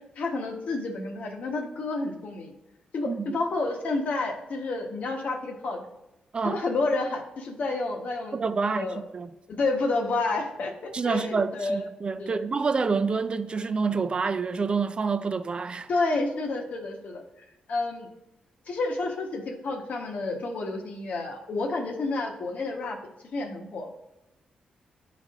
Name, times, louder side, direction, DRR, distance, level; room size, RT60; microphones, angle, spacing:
voice 1, 0.2-2.5 2.9-5.8 6.4-9.0 9.5-11.9 12.2-12.4 15.9-17.2 17.7-18.1 18.7-23.0 23.3-23.9, left 3 dB, 65° left, 1.1 m, -30 dB
voice 2, 3.1-3.4 6.3-6.6 8.3-9.3 10.9-15.9, right 4 dB, 40° right, 0.4 m, -28 dB
10.5 x 4.2 x 2.5 m
cardioid pair, 75°, 3 cm